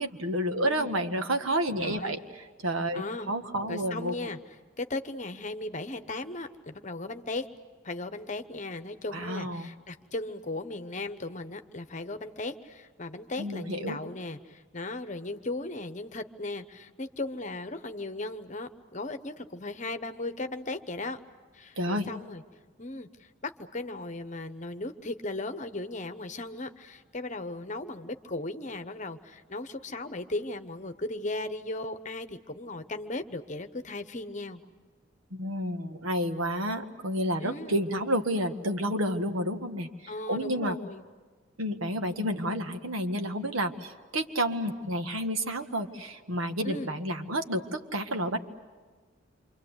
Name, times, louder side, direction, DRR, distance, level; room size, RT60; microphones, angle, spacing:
voice 1, 0.0-2.2 2.6-4.1 9.1-9.7 13.4-14.0 21.8-22.1 35.3-40.8 41.6-48.4, equal, 90° right, 6 dB, 1.7 m, -30 dB
voice 2, 0.6-1.0 1.8-2.2 2.9-3.3 3.6-4.4 4.8-7.5 7.8-21.2 21.5-22.4 22.8-34.6 37.4-37.8 40.1-41.1 46.6-46.9, left 2 dB, 35° left, 9 dB, 1.0 m, -37 dB
28.5 x 25.5 x 8.1 m, 1.4 s
head